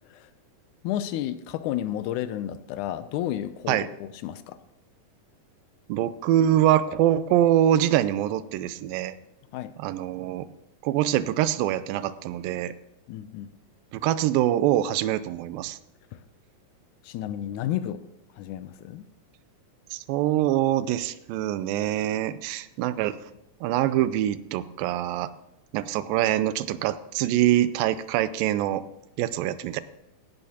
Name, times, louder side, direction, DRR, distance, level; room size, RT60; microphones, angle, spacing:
voice 1, 0.8-4.6 9.5-9.7 13.1-13.5 16.1-16.2 17.0-18.0 18.3-19.1, left 12 dB, 80° left, 12 dB, 1.8 m, -32 dB
voice 2, 5.9-9.1 9.8-10.5 10.8-12.7 13.9-15.8 19.9-23.2 23.6-25.3 25.7-28.8 29.2-29.8, right 12 dB, 85° right, 15 dB, 2.3 m, -24 dB
17.0 x 10.5 x 2.9 m, 0.87 s
omnidirectional pair, 4.0 m